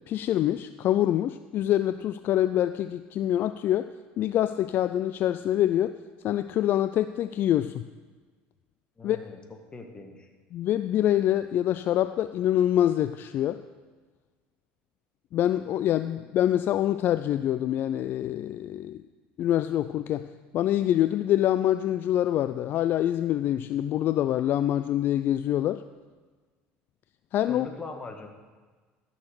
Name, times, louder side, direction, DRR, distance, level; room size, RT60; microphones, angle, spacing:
voice 1, 0.1-5.9 6.2-7.8 9.0-9.2 10.5-13.6 15.3-19.0 19.4-25.8 27.3-27.7, left 12 dB, 50° left, 12 dB, 0.3 m, -25 dB
voice 2, 9.0-9.4 9.7-10.3 27.5-28.3, left 3 dB, 20° left, 3 dB, 1.8 m, -41 dB
13.5 x 6.5 x 6.5 m, 1.4 s
supercardioid pair, 100°, 4 cm